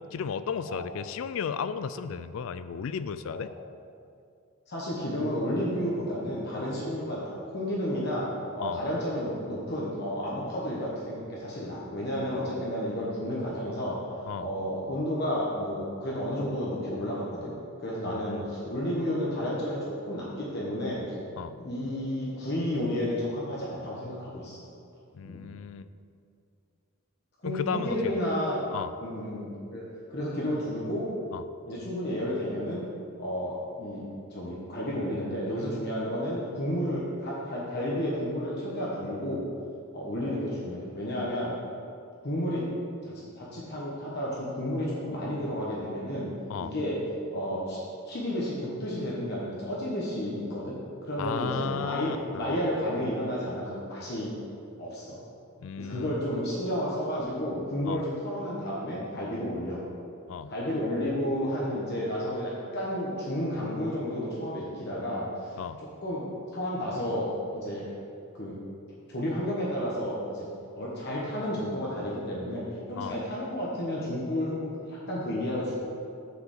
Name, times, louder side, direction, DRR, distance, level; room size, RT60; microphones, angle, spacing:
voice 1, 0.0-3.5 8.6-8.8 14.3-14.5 18.0-18.5 21.4-21.6 25.1-25.9 27.4-28.2 28.7-28.9 31.3-31.4 46.5-46.7 51.2-52.5 55.6-56.2 57.9-58.0 60.3-60.5 65.6-65.8 73.0-73.2, left 6 dB, 65° left, 13 dB, 0.3 m, -34 dB
voice 2, 4.7-8.3 8.5-14.0 14.4-21.1 21.6-24.6 25.2-25.4 27.4-28.6 29.0-29.8 30.1-31.1 31.7-32.8 33.2-39.4 39.9-41.5 42.2-42.7 43.0-46.3 46.6-47.0 47.3-47.8 48.0-50.8 51.1-54.3 54.8-55.2 55.8-59.8 60.5-65.2 66.0-67.3 67.5-68.0 68.3-68.6 69.1-70.5 70.8-75.8, equal, 50° left, -6 dB, 1.1 m, -31 dB
6.7 x 4.9 x 6.6 m, 2.5 s
head